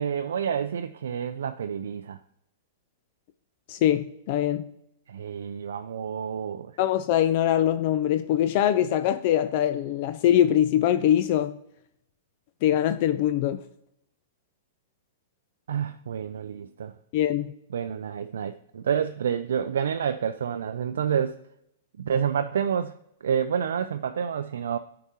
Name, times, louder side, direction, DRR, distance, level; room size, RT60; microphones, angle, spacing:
voice 1, 0.0-2.2 5.1-6.8 15.7-16.9 17.7-21.4 22.0-22.9 23.2-24.8, right 8 dB, 90° right, 0.3 m, -28 dB
voice 2, 3.7-4.7 6.8-11.6 12.6-13.6 17.1-17.5, left 11 dB, 50° left, 0.3 m, -23 dB
9.9 x 4.7 x 2.8 m
hypercardioid pair, 145°, 0 cm